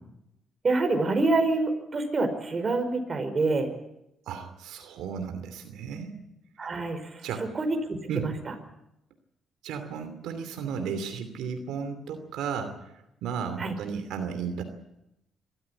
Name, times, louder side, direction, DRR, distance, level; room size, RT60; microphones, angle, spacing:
voice 1, 0.6-3.7 6.6-7.0 7.5-8.3 13.6-13.7, right 3 dB, 35° right, 6 dB, 5.0 m, -26 dB
voice 2, 4.3-6.2 7.2-7.5 8.1-8.3 9.6-12.7 13.2-14.6, right 6 dB, 85° right, 7 dB, 2.7 m, -34 dB
24.0 x 14.0 x 9.9 m, 0.85 s
cardioid pair, 90°, 0 cm